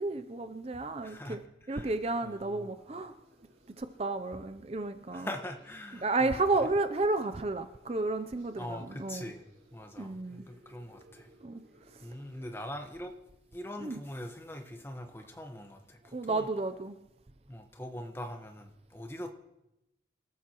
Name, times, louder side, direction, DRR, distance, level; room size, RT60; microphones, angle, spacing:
voice 1, 0.0-1.4 1.7-3.1 3.8-5.3 6.0-9.3 10.0-10.4 11.4-11.6 11.9-12.0 13.8-14.0 16.1-17.0, right 3 dB, 35° right, 0.5 m, -32 dB
voice 2, 1.0-1.4 1.7-1.9 2.2-2.7 5.1-6.3 8.6-9.4 9.7-11.3 12.0-13.1 13.5-16.5 17.5-19.3, left 1 dB, 15° left, 1.2 m, -42 dB
sound 1, 1.6-13.2, right 1 dB, 85° right, 6.3 m, -62 dB
26.5 x 13.0 x 3.0 m
head